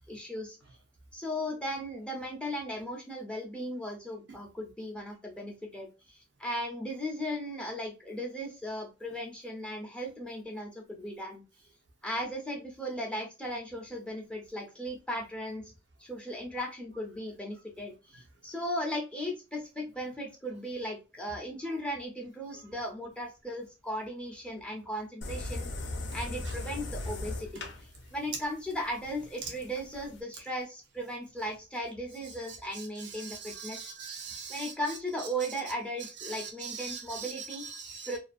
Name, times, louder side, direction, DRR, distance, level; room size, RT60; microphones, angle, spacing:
voice 1, 0.1-0.6 1.1-11.4 12.0-15.6 16.0-25.7 26.1-33.9 34.5-37.6 38.1-38.2, equal, 5° left, 0.5 m, -37 dB
sound 1, 25.2-30.2, left 2 dB, 70° left, 0.5 m, -38 dB
voice 2, 33.1-34.7 36.2-38.1, right 6 dB, 70° right, 0.6 m, -41 dB
2.4 x 2.3 x 2.4 m
head